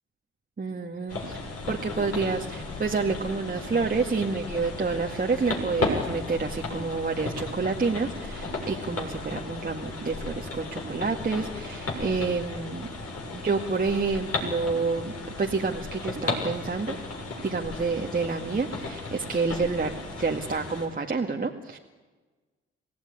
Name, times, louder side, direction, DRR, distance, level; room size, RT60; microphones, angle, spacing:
voice 1, 0.6-1.4 1.7-12.9 13.3-15.1 15.4-17.0 17.4-21.8, right 4 dB, 25° right, 1 dB, 1.9 m, -28 dB
sound 1, 1.1-20.9, left 2 dB, 50° left, 7.0 m, -35 dB
27.5 x 17.5 x 9.9 m, 1.3 s
figure-of-eight pair, 40°, 32 cm